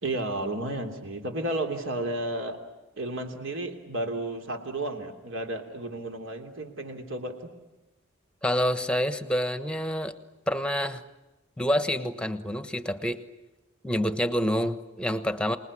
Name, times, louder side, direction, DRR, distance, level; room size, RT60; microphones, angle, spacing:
voice 1, 0.0-2.6 3.0-7.5, right 1 dB, 65° right, 5 dB, 3.3 m, -32 dB
voice 2, 8.4-10.1 10.5-11.0 11.6-13.2 13.8-15.6, equal, 5° left, 11 dB, 1.2 m, -27 dB
27.5 x 20.0 x 9.9 m, 1.0 s
head